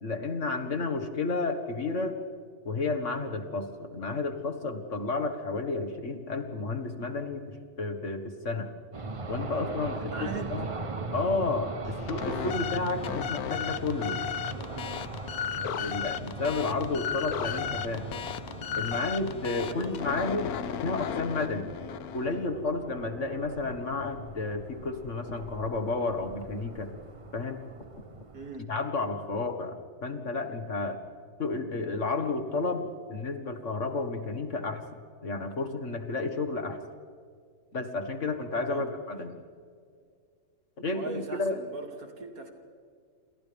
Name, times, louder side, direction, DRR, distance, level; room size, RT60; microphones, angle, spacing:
voice 1, 0.0-2.2 2.7-8.7 9.3-10.1 10.5-10.7 11.1-14.2 15.8-18.1 18.8-20.5 20.8-21.8 22.1-26.9 27.3-27.6 28.7-31.0 31.4-34.8 35.2-36.8 37.7-39.3 40.8-41.6, left 3 dB, 50° left, 6 dB, 2.0 m, -31 dB
sound 1, 8.9-28.6, right 3 dB, 25° right, 0.8 m, -40 dB
voice 2, 9.9-10.5 15.5-15.9 19.7-20.1 28.3-28.7 38.7-38.9 40.9-42.5, right 3 dB, 70° right, 2 dB, 3.1 m, -40 dB
sound 2, 11.8-22.4, left 9 dB, 75° left, 1.3 m, -35 dB
28.5 x 27.5 x 3.5 m, 2.1 s
omnidirectional pair, 1.6 m